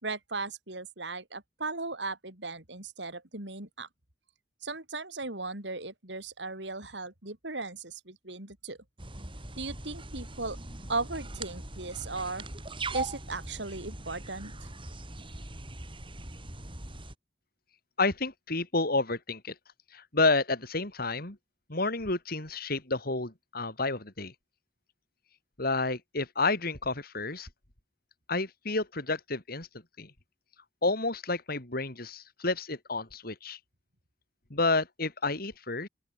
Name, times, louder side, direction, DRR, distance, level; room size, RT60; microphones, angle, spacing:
voice 1, 0.0-3.9 4.6-8.8 9.6-10.6 10.9-12.5 12.9-14.5, right 3 dB, 80° right, 5.8 m, -37 dB
sound 1, 9.0-17.1, right 2 dB, 30° right, 4.1 m, -41 dB
voice 2, 18.0-19.5 19.9-21.4 21.7-24.3 25.6-27.5 28.3-29.7 30.0-30.1 30.8-33.6 34.5-35.9, left 3 dB, 60° left, 4.4 m, -30 dB
open air
head